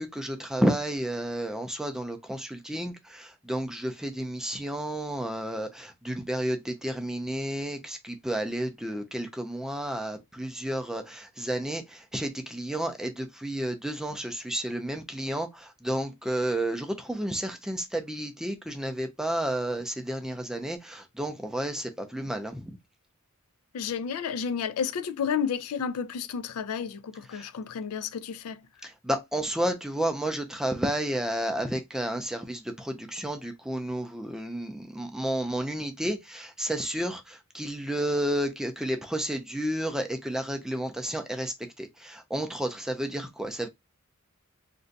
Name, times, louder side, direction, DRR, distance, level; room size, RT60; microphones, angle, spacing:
voice 1, 0.0-22.8 27.3-27.5 28.8-43.7, right 1 dB, ahead, 0.4 m, -31 dB
voice 2, 23.7-28.6, left 7 dB, 80° left, 0.4 m, -31 dB
2.5 x 2.2 x 3.8 m
head